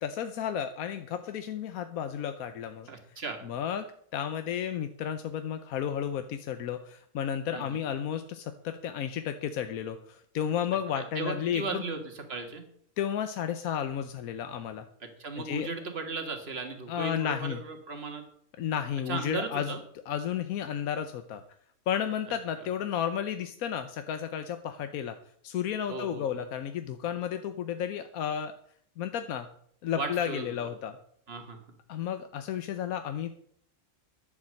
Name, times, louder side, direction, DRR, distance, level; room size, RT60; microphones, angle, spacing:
voice 1, 0.0-11.8 13.0-14.9 15.4-15.7 16.9-17.6 18.6-19.7 20.1-21.4 21.9-25.2 25.4-28.5 29.0-29.5 29.8-31.0 31.9-33.3, left 9 dB, 85° left, 9 dB, 1.2 m, -32 dB
voice 2, 2.9-3.4 7.5-7.8 11.0-12.6 15.2-18.2 19.1-19.8 25.9-26.3 29.9-30.5 31.3-31.6, right 4 dB, 45° right, 5 dB, 2.0 m, -36 dB
11.0 x 7.4 x 7.6 m, 0.65 s
omnidirectional pair, 1.4 m